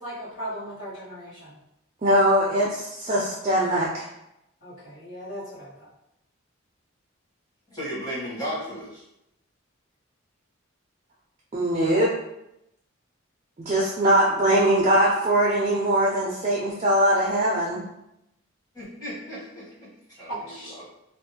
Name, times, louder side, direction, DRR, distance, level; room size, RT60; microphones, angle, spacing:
voice 1, 0.0-1.6 4.6-5.9 20.3-20.8, right 1 dB, 70° left, -10 dB, 1.3 m, -37 dB
voice 2, 2.0-4.1 11.5-12.1 13.6-17.8, right 1 dB, 30° right, -3 dB, 0.3 m, -21 dB
voice 3, 7.7-9.0 18.7-19.7 20.1-20.3, equal, 20° left, -8 dB, 1.0 m, -34 dB
2.5 x 2.1 x 2.7 m, 0.85 s
head